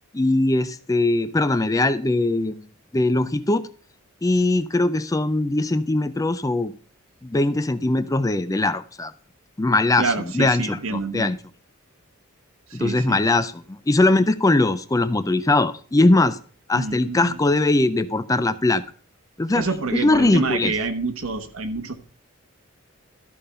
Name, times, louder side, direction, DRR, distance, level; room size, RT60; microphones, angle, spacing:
voice 1, 0.1-2.6 2.9-3.7 4.2-6.7 7.2-9.1 9.6-11.4 12.7-16.4 16.7-18.8 19.4-19.6 19.9-20.7, left 2 dB, 15° left, 13 dB, 0.4 m, -21 dB
voice 2, 10.0-11.3 12.7-13.2 16.8-17.4 19.5-21.9, right 3 dB, 75° right, 9 dB, 1.1 m, -27 dB
13.0 x 5.2 x 5.6 m, 0.42 s
head